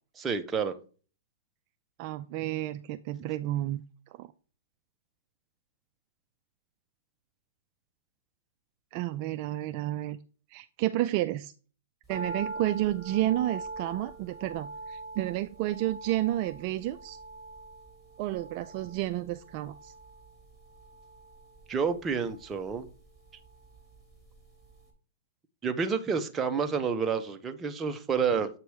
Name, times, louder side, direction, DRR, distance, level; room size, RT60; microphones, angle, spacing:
voice 1, 0.2-0.7 21.7-22.9 25.6-28.5, right 6 dB, 20° right, 0.8 m, -29 dB
voice 2, 2.0-3.8 4.1-4.3 8.9-10.2 10.5-11.5 12.1-17.2 18.2-19.9, right 15 dB, 45° right, 0.4 m, -31 dB
sound 1, 12.1-24.4 24.6-24.7, right 3 dB, 10° left, 2.2 m, -43 dB
8.0 x 3.0 x 4.7 m
hypercardioid pair, 130°, 0 cm